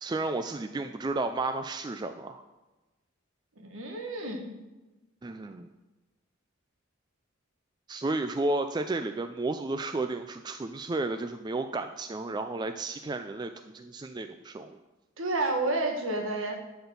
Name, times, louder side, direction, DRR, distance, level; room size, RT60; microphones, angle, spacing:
voice 1, 0.0-2.4 5.2-5.7 7.9-14.8, right 2 dB, 20° right, 8 dB, 0.3 m, -32 dB
voice 2, 3.6-4.5 15.2-16.6, right 2 dB, 70° right, 3 dB, 1.5 m, -30 dB
11.5 x 4.3 x 6.9 m, 1.1 s
head